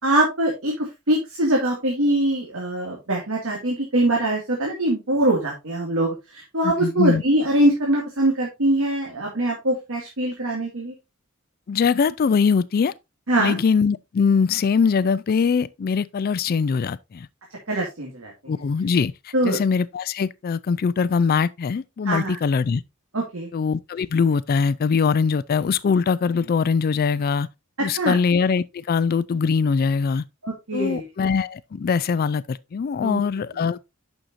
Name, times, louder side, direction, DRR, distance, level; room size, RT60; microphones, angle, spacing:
voice 1, 0.0-10.9 13.3-13.6 17.7-18.3 19.3-19.6 22.1-22.4 23.1-23.5 28.0-28.2 30.4-31.1 33.0-33.2, right 1 dB, 75° right, 2.2 m, -23 dB
voice 2, 6.6-7.2 11.7-12.9 13.4-17.3 18.5-22.8 23.5-27.5 27.8-30.2 30.7-33.8, left 5 dB, 45° left, 0.3 m, -22 dB
9.0 x 6.4 x 2.6 m
head